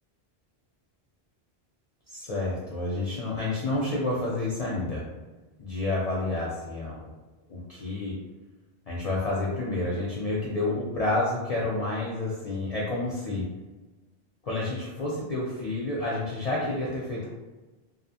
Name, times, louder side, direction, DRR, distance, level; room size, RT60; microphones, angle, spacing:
voice 1, 2.1-5.0 5.6-7.0 7.5-8.1 8.9-13.5 14.4-17.3, left 2 dB, 50° left, -5 dB, 0.4 m, -29 dB
2.6 x 2.1 x 2.7 m, 1.2 s
omnidirectional pair, 1.1 m